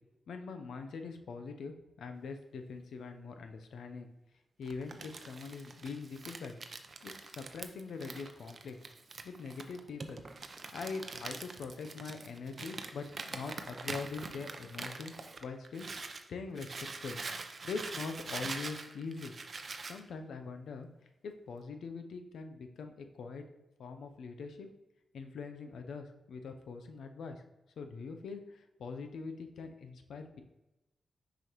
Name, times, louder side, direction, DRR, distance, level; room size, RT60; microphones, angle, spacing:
voice 1, 0.3-4.1 4.6-6.6 7.0-8.8 9.2-10.2 10.7-16.7 17.0-17.2 17.6-19.3 19.8-20.9 21.2-23.4 23.8-24.7 25.1-27.4 27.8-30.4, left 4 dB, 85° left, 6 dB, 0.6 m, -43 dB
Crumpling crinkling, 4.6-16.2 16.5-20.0, right 4 dB, 50° right, 0.6 m, -44 dB
6.4 x 5.0 x 3.0 m, 0.99 s
cardioid pair, 65°, 0 cm